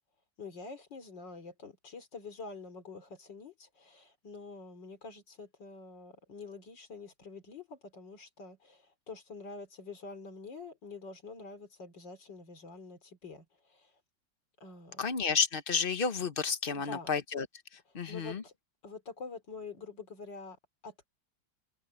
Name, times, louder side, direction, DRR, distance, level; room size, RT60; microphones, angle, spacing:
voice 1, 0.4-13.9 14.6-15.0 16.7-17.1 17.9-18.5 18.8-21.1, left 4 dB, 70° left, 3.8 m, -47 dB
voice 2, 15.0-17.5 17.9-18.4, left 5 dB, 35° left, 1.0 m, -31 dB
omnidirectional pair, 2.1 m